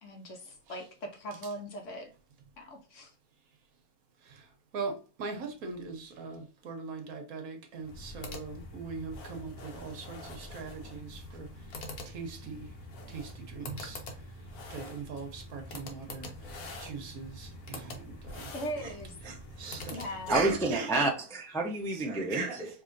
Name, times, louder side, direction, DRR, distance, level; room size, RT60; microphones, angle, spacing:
voice 1, 0.0-2.1 2.6-3.1 18.5-19.2 19.9-20.5, equal, 60° left, 1.1 m, -40 dB
voice 2, 4.7-11.5 12.1-12.7 13.1-14.0 14.7-16.3 16.8-18.5 19.2-20.0 20.3-20.9 21.9-22.7, right 4 dB, 75° right, 1.3 m, -40 dB
sound 1, 7.8-20.8, left 2 dB, 80° left, 1.4 m, -45 dB
voice 3, 20.3-22.7, right 2 dB, 5° left, 0.5 m, -29 dB
4.7 x 2.8 x 2.5 m
omnidirectional pair, 1.6 m